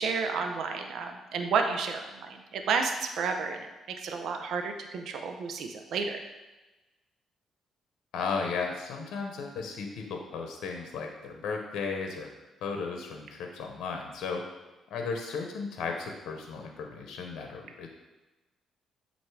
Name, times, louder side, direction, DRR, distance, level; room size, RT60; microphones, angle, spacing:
voice 1, 0.0-6.2, right 5 dB, 70° right, 5 dB, 0.6 m, -31 dB
voice 2, 8.1-12.3 12.6-17.9, left 5 dB, 80° left, 2 dB, 0.8 m, -35 dB
7.8 x 2.7 x 4.7 m, 1.1 s
cardioid pair, 90°, 0 cm